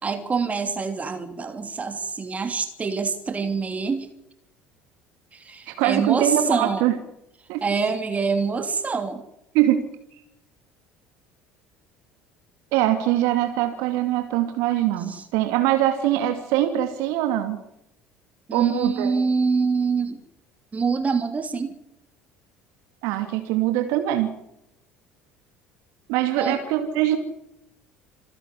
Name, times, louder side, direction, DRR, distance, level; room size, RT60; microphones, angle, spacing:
voice 1, 0.0-4.1 5.3-6.8 7.6-9.2 15.1-15.2 18.5-20.2 20.7-21.7 26.3-26.6, right 5 dB, 25° right, 8 dB, 2.9 m, -25 dB
voice 2, 5.7-7.0 7.5-7.6 9.5-9.9 12.7-17.6 18.5-19.1 23.0-24.4 26.1-27.2, right 13 dB, 65° right, 7 dB, 2.4 m, -22 dB
27.5 x 11.0 x 9.9 m, 0.82 s
figure-of-eight pair, 60°, 6 cm